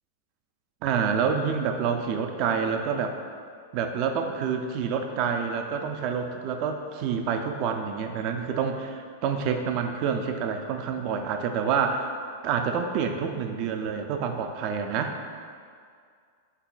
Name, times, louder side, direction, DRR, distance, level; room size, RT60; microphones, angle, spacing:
voice 1, 0.8-3.2 3.7-12.1 12.4-15.1, right 6 dB, 50° right, 5 dB, 0.3 m, -27 dB
3.9 x 2.1 x 3.8 m, 2.1 s
hypercardioid pair, 110°, 0 cm